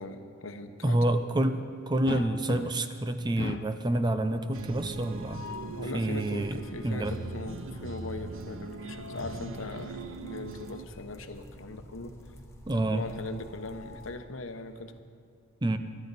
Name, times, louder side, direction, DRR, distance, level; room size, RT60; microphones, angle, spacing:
voice 1, 0.0-1.0 5.7-12.1 12.9-14.9, left 2 dB, 70° left, 7 dB, 1.0 m, -40 dB
voice 2, 0.8-5.4 5.9-7.2 12.7-13.1 15.6-15.8, right 1 dB, 20° right, 8 dB, 0.6 m, -28 dB
sound 1, 2.1-3.0 3.4-3.8 5.1-5.8 8.5-9.5 10.9-11.1 11.5-11.6 13.1-14.4, left 5 dB, 50° left, 0.3 m, -41 dB
sound 2, 4.5-14.2, equal, 15° left, 1.1 m, -50 dB
sound 3, 4.5-10.9, right 3 dB, 70° right, 0.6 m, -40 dB
23.0 x 12.0 x 4.1 m, 2.2 s
head